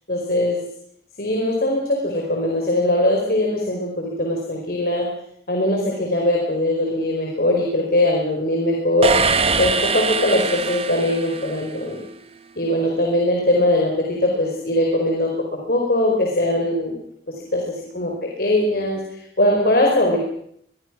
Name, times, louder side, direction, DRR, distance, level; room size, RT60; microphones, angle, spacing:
voice 1, 0.1-0.6 1.2-5.1 5.5-9.1 9.6-12.0 12.6-15.3 15.7-17.0 17.3-20.2, left 1 dB, 60° left, 0 dB, 4.9 m, -21 dB
sound 1, 9.0-11.9, right 4 dB, 35° right, 1.3 m, -22 dB
24.5 x 22.5 x 6.3 m, 0.69 s
head